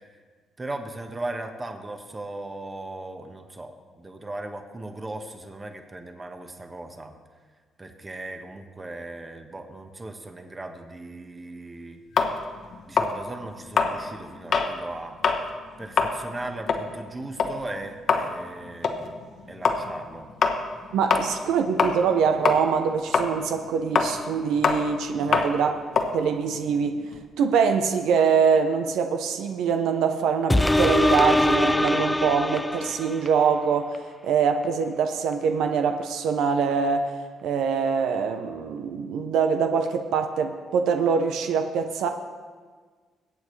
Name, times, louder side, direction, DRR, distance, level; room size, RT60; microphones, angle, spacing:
voice 1, 0.6-7.1 7.8-12.0 12.8-15.2 15.8-20.3 25.3-25.5, right 2 dB, 20° right, 5 dB, 1.3 m, -38 dB
sound 1, 12.2-14.8 15.1-15.5 15.8-22.2 22.4-27.2, left 5 dB, 60° left, 1.1 m, -25 dB
voice 2, 20.9-25.8 26.1-27.0 27.4-34.0 34.2-37.1 37.4-42.1, right 6 dB, 85° right, 6 dB, 0.7 m, -24 dB
sound 2, 30.5-33.4 33.9-34.0, left 1 dB, 10° left, 0.3 m, -22 dB
22.0 x 8.3 x 3.2 m, 1.5 s
cardioid pair, 90°, 0 cm